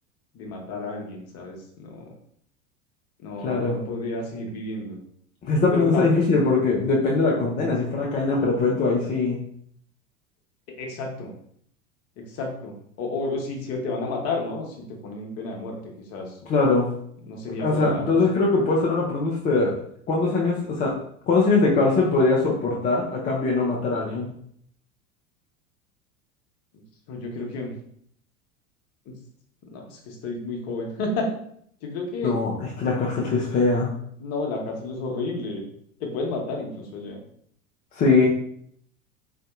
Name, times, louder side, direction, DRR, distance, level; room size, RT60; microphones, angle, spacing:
voice 1, 0.3-2.1 3.2-5.0 5.7-6.1 10.8-11.3 12.3-14.7 15.0-15.8 16.1-16.3 17.3-18.0 27.1-27.7 29.1-29.2 29.7-31.3 31.8-32.3 34.2-35.6 36.0-37.2, left 3 dB, 35° left, 1 dB, 0.8 m, -31 dB
voice 2, 3.4-3.8 5.4-9.4 16.5-16.9 17.6-19.7 20.1-20.9 21.3-24.3 32.2-33.9 38.0-38.3, left 3 dB, 20° left, -3 dB, 0.4 m, -21 dB
3.8 x 2.5 x 2.4 m, 0.67 s
figure-of-eight pair, 80°, 41 cm